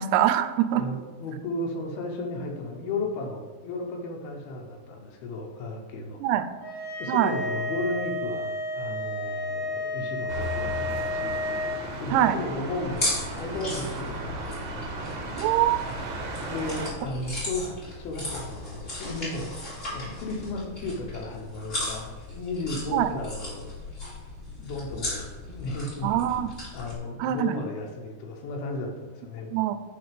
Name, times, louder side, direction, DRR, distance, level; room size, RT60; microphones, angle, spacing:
voice 1, 0.0-0.8 6.2-6.4 7.1-7.3 12.1-12.4 15.4-15.8 22.9-23.1 26.0-26.5 27.2-27.6 29.5-29.8, right 12 dB, 90° right, 11 dB, 2.6 m, -23 dB
voice 2, 0.7-6.2 7.0-11.4 12.0-15.4 16.5-23.7 24.6-26.2 26.7-29.5, left 2 dB, 75° left, 1 dB, 2.8 m, -34 dB
sound 1, 6.6-11.8, left 1 dB, 60° left, 4.0 m, -31 dB
sound 2, 10.3-16.9, right 2 dB, 70° right, 1.5 m, -35 dB
sound 3, 12.9-27.0, left 2 dB, 15° left, 2.6 m, -36 dB
10.5 x 4.0 x 5.2 m, 1.3 s
omnidirectional pair, 4.7 m